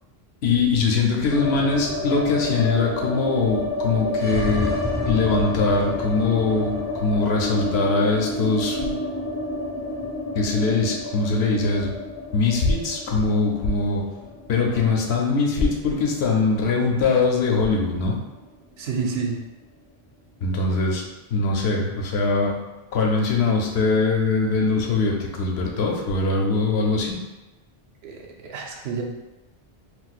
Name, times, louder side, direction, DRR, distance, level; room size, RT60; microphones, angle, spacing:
voice 1, 0.4-4.8 5.0-9.0 10.3-11.9 12.3-14.0 14.5-18.1 20.4-21.1 21.3-22.6 22.9-27.2, left 4 dB, 90° left, 0 dB, 0.9 m, -22 dB
sound 1, 1.3-17.4 17.7-17.8 18.0-18.7, left 1 dB, 15° left, 0.6 m, -29 dB
voice 2, 14.6-14.9 18.8-19.4 28.0-29.0, right 5 dB, 85° right, 1 dB, 0.8 m, -30 dB
4.0 x 2.3 x 2.4 m, 1.1 s
omnidirectional pair, 1.1 m